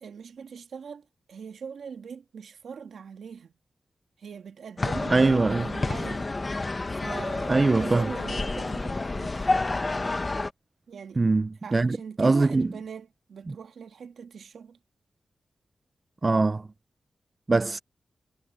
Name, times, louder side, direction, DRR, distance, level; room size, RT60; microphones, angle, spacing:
voice 1, 0.0-3.5 4.2-6.3 6.9-9.6 10.9-11.2 11.6-14.8, right 6 dB, 80° right, 1.9 m, -41 dB
sound 1, 4.8-10.5, left 3 dB, 25° left, 0.9 m, -29 dB
voice 2, 5.1-5.6 7.5-8.1 11.2-12.7 16.2-16.7 17.5-17.8, right 3 dB, 30° right, 0.3 m, -22 dB
wide cardioid pair, 145°, 0 cm